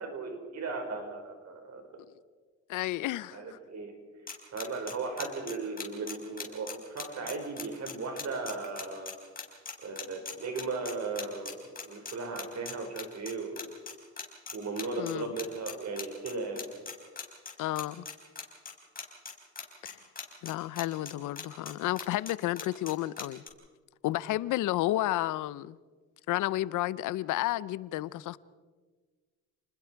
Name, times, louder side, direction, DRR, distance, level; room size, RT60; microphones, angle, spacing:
voice 1, 0.0-2.0 3.3-3.9 4.5-9.1 9.8-13.6 14.5-16.6, right 3 dB, 60° right, 5.1 m, -37 dB
voice 2, 2.7-3.6 15.0-15.2 17.6-18.1 19.8-20.0 20.4-23.4 24.0-25.8 26.3-28.4, left 15 dB, 90° left, 0.7 m, -31 dB
sound 1, 4.3-23.5, left 5 dB, 30° left, 4.7 m, -39 dB
29.5 x 20.5 x 4.7 m
cardioid pair, 90°, 30 cm